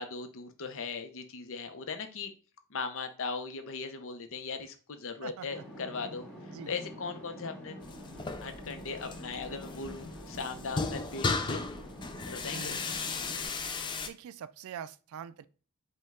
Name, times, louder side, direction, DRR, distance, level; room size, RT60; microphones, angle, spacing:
voice 1, 0.0-2.3 2.7-6.3 6.7-7.8 8.4-11.6 12.3-12.8, left 4 dB, 65° left, 0.6 m, -38 dB
voice 2, 5.2-5.6 6.5-6.7 12.5-12.8 14.0-15.5, right 8 dB, 70° right, 0.3 m, -44 dB
sound 1, 5.5-13.5, equal, 5° left, 2.0 m, -46 dB
sound 2, 7.8-14.1, left 4 dB, 20° left, 0.4 m, -36 dB
5.2 x 2.2 x 3.5 m
head